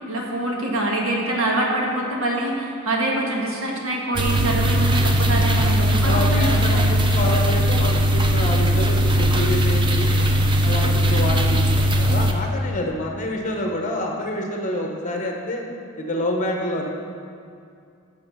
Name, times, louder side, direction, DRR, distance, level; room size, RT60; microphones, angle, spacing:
voice 1, 0.1-6.9, right 1 dB, 80° right, -1 dB, 1.5 m, -25 dB
sound 1, 4.1-12.3, equal, 20° right, 0.5 m, -19 dB
voice 2, 6.0-10.2 10.6-15.6 16.0-16.9, left 1 dB, 35° left, 1 dB, 1.1 m, -27 dB
7.9 x 6.6 x 5.6 m, 2.4 s
head